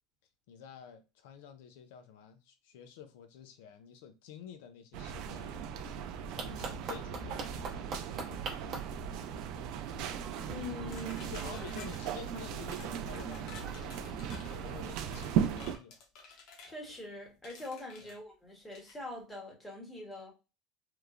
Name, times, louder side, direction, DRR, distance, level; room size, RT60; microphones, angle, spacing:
voice 1, 0.5-5.6 6.3-8.7 11.3-16.0 18.0-18.1, left 8 dB, 85° left, 0.4 m, -50 dB
sound 1, 4.9-15.8, right 8 dB, 60° right, 0.3 m, -37 dB
sound 2, 6.4-14.9, right 5 dB, 35° right, 0.7 m, -45 dB
voice 2, 10.5-11.5 16.6-20.3, left 2 dB, 10° left, 1.0 m, -44 dB
sound 3, 10.9-12.1 12.7-12.9 13.1-14.6 15.1-16.8 17.4-18.2 18.7-19.0, left 5 dB, 55° left, 0.7 m, -52 dB
2.9 x 2.0 x 2.4 m
cardioid pair, 145°, 0 cm